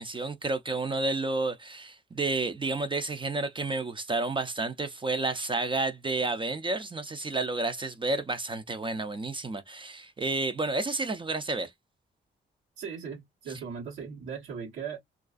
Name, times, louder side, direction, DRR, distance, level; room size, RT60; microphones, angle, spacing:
voice 1, 0.0-11.7, right 3 dB, 25° right, 0.4 m, -30 dB
voice 2, 12.8-15.0, right 6 dB, 90° right, 1.1 m, -38 dB
2.4 x 2.3 x 2.3 m
cardioid pair, 65°, 20 cm